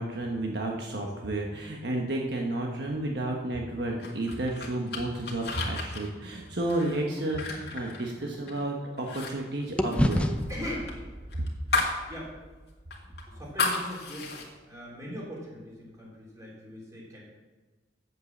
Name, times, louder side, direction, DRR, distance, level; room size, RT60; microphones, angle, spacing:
voice 1, 0.0-10.3, right 1 dB, 65° right, 0 dB, 1.2 m, -31 dB
sound 1, 4.0-8.6 9.0-9.3 9.6-12.0 12.4-12.5 12.9-14.5, left 3 dB, 60° left, 2.1 m, -33 dB
sound 2, 7.1-9.4 9.8-14.0, equal, 5° left, 0.5 m, -33 dB
voice 2, 10.5-11.0 12.1-12.4 13.0-14.3 14.7-17.2, left 1 dB, 20° right, -5 dB, 3.7 m, -40 dB
8.4 x 7.7 x 7.2 m, 1.2 s
head